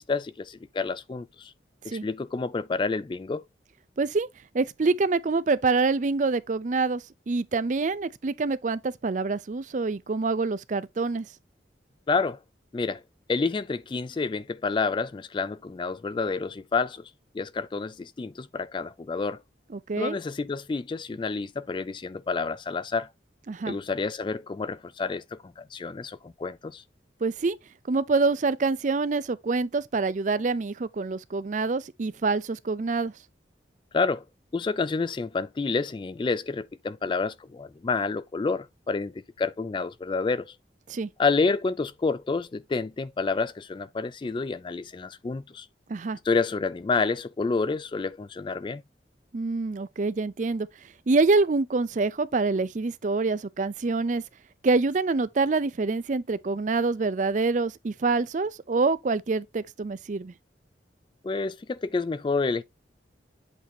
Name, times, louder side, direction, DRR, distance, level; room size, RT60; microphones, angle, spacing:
voice 1, 0.0-1.5 1.8-3.4 12.1-12.4 12.7-13.0 13.3-17.1 17.3-19.4 20.0-23.1 23.7-26.8 33.9-34.2 34.5-40.5 41.2-45.7 46.3-48.8 61.2-62.6, left 4 dB, 25° left, 0.3 m, -29 dB
voice 2, 4.0-4.3 4.5-11.3 19.7-20.2 23.5-23.8 27.2-27.6 27.9-33.1 40.9-41.1 45.9-46.2 49.3-50.7 51.1-54.2 54.6-60.3, right 3 dB, 45° right, 0.5 m, -26 dB
8.2 x 2.8 x 4.2 m
head